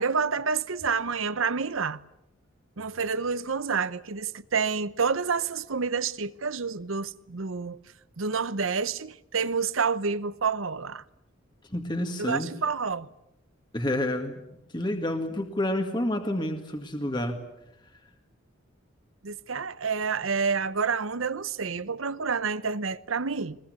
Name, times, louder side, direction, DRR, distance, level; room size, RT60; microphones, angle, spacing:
voice 1, 0.0-2.0 2.8-7.8 8.2-11.0 12.2-13.1 19.2-23.6, right 5 dB, 80° right, 0.9 m, -28 dB
voice 2, 11.7-12.5 13.7-14.4 14.7-17.4, left 1 dB, 20° left, 1.9 m, -29 dB
22.0 x 21.5 x 9.7 m
head